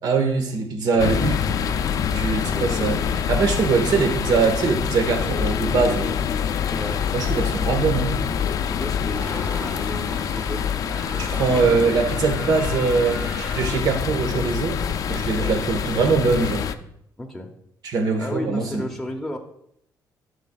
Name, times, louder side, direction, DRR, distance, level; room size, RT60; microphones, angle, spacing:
voice 1, 0.0-1.4 2.1-3.0 3.3-6.1 7.1-8.1 11.2-14.8 15.1-16.7 17.8-18.9, right 4 dB, 65° right, 4 dB, 1.4 m, -22 dB
sound 1, 1.0-16.7, left 8 dB, 55° left, 0.4 m, -25 dB
voice 2, 2.5-3.0 6.7-7.0 8.6-12.1 15.4-15.6 17.2-17.5 18.2-19.4, left 1 dB, 5° left, 1 dB, 0.7 m, -34 dB
Screaming, 9.1-14.0, right 1 dB, 20° right, 1.2 m, -39 dB
11.5 x 6.4 x 2.3 m, 0.73 s
cardioid pair, 140°, 7 cm